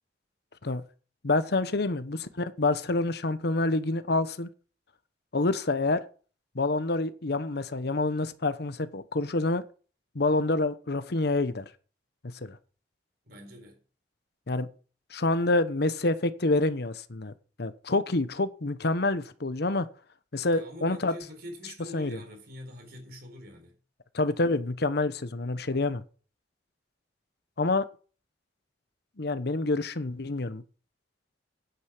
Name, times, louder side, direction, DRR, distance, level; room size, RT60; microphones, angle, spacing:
voice 1, 1.2-4.5 5.3-6.0 6.5-9.6 10.1-11.6 12.2-12.6 14.5-14.7 15.1-17.3 17.6-19.9 20.3-21.1 21.9-22.2 24.1-26.0 27.6-27.8 29.2-30.6, left 2 dB, 60° left, 1.0 m, -27 dB
voice 2, 13.2-13.8 20.5-23.8, left 1 dB, 60° right, 4.2 m, -45 dB
9.7 x 9.5 x 6.0 m
head